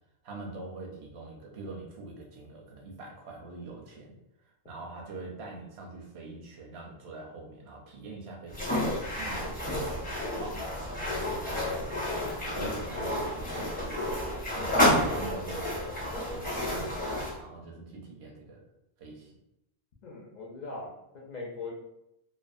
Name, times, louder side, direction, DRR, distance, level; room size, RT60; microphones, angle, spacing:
voice 1, 0.2-4.1 4.7-10.8 11.3-14.0 14.5-18.6 19.0-19.3, right 3 dB, 85° right, 0 dB, 0.9 m, -44 dB
sound 1, 8.5-17.4, left 1 dB, 10° left, 0.6 m, -30 dB
voice 2, 20.0-21.7, left 3 dB, 55° left, -2 dB, 0.5 m, -40 dB
2.5 x 2.2 x 2.5 m, 0.83 s
omnidirectional pair, 1.1 m